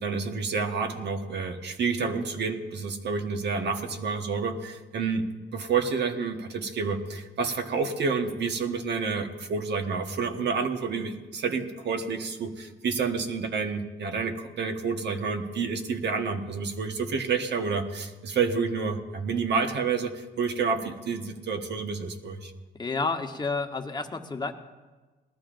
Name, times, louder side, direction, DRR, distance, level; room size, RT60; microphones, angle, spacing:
voice 1, 0.0-22.5, right 5 dB, 60° right, 6 dB, 1.3 m, -29 dB
voice 2, 22.8-24.5, left 3 dB, 20° left, 5 dB, 1.1 m, -30 dB
20.0 x 13.5 x 2.6 m, 1.3 s
cardioid pair, 90°, 20 cm